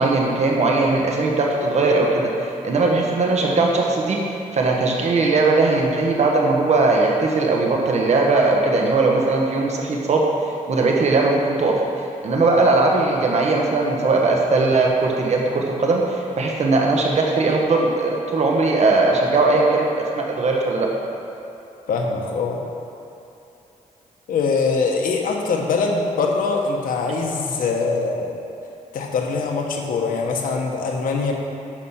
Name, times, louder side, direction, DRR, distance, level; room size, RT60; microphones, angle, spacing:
voice 1, 0.0-11.8 12.2-19.8 20.1-20.9, right 3 dB, 55° right, -1 dB, 1.2 m, -19 dB
voice 2, 21.9-22.6 24.3-28.4 28.9-31.3, left 4 dB, 85° left, 1 dB, 1.2 m, -23 dB
9.1 x 6.5 x 5.8 m, 2.8 s
cardioid pair, 115°, 14 cm